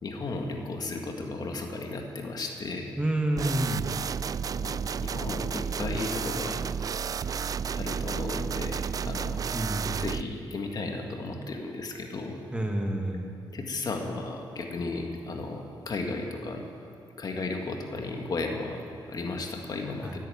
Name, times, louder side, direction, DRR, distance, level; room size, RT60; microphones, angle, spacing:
voice 1, 0.0-2.9 4.6-6.6 7.7-9.5 10.0-12.4 13.5-16.7 17.2-20.2, left 3 dB, 50° left, 2 dB, 1.8 m, -34 dB
voice 2, 3.0-3.9 9.5-10.0 12.5-13.3 20.0-20.2, right 1 dB, 10° right, 2 dB, 1.8 m, -29 dB
sound 1, 3.4-10.2, right 6 dB, 45° right, 0.3 m, -32 dB
16.5 x 8.4 x 8.7 m, 2.7 s
cardioid pair, 100°, 9 cm